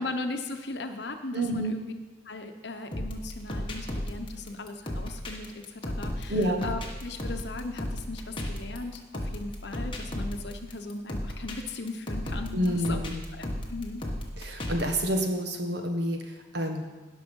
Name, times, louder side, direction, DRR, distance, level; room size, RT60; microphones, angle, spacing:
voice 1, 0.0-1.9 2.2-13.0 13.3-14.0, left 2 dB, 55° left, 6 dB, 1.0 m, -38 dB
voice 2, 1.3-1.7 6.3-6.7 12.5-13.2 14.4-16.9, equal, 55° right, 4 dB, 1.5 m, -28 dB
sound 1, 2.9-15.2, left 1 dB, 25° left, 1.5 m, -35 dB
17.5 x 6.2 x 5.5 m, 1.2 s
head